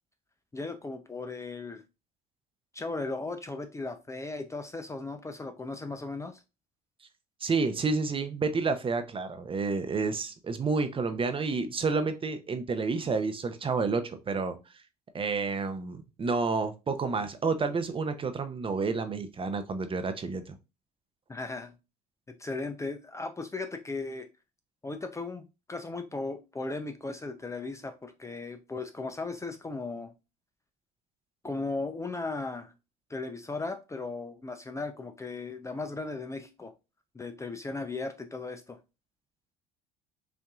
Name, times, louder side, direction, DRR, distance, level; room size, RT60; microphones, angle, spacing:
voice 1, 0.5-1.8 2.7-6.4 21.3-21.7 22.3-24.3 24.8-30.1 31.4-32.7 33.1-36.7 37.1-38.8, left 3 dB, 15° left, 0.5 m, -37 dB
voice 2, 7.4-14.6 15.1-20.6, right 4 dB, 30° right, 0.6 m, -30 dB
5.4 x 2.6 x 2.4 m
supercardioid pair, 80°, 19 cm